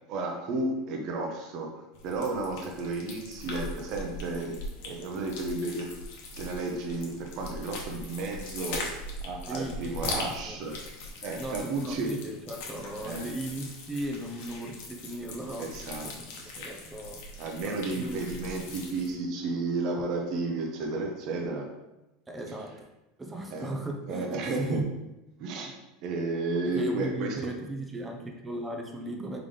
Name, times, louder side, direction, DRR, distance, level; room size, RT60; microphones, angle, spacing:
voice 1, 0.1-5.9 6.4-10.8 11.2-12.1 13.0-13.3 15.6-16.1 16.4-16.7 17.4-21.7 23.5-23.7 24.1-24.8 25.4-25.7 26.0-27.3, right 3 dB, 55° right, 2 dB, 0.9 m, -33 dB
sound 1, 1.9-19.1, left 2 dB, 70° left, 1.0 m, -41 dB
voice 2, 9.5-10.6 11.4-15.7 16.0-17.2 17.6-18.4 22.3-22.8 23.2-24.9 26.7-29.4, right 1 dB, 15° right, 2 dB, 0.7 m, -37 dB
3.9 x 3.6 x 3.3 m, 0.96 s
supercardioid pair, 115°, 0 cm